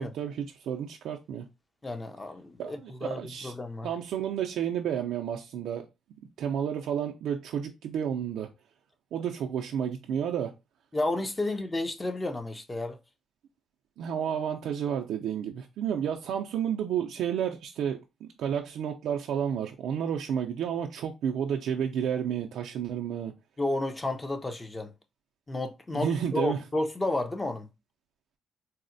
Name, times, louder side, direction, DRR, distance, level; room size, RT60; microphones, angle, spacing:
voice 1, 0.0-1.4 2.6-3.5 3.8-5.9 6.4-8.5 9.1-10.5 14.0-23.3 25.9-26.6, right 8 dB, 80° right, 0.4 m, -31 dB
voice 2, 1.8-3.9 10.9-13.0 23.6-24.9 25.5-27.7, left 2 dB, 20° left, 0.5 m, -31 dB
4.0 x 2.1 x 2.6 m
cardioid pair, 90°, 0 cm